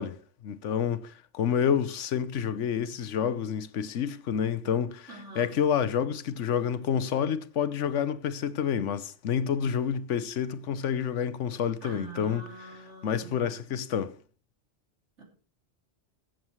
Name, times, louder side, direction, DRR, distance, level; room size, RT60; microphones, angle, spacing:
voice 1, 0.0-5.1 5.4-12.4 13.0-14.2, left 8 dB, 85° left, 1.1 m, -28 dB
voice 2, 5.1-5.6 11.8-13.4 15.2-15.3, right 3 dB, 80° right, 3.5 m, -44 dB
21.5 x 7.7 x 3.1 m
omnidirectional pair, 1.2 m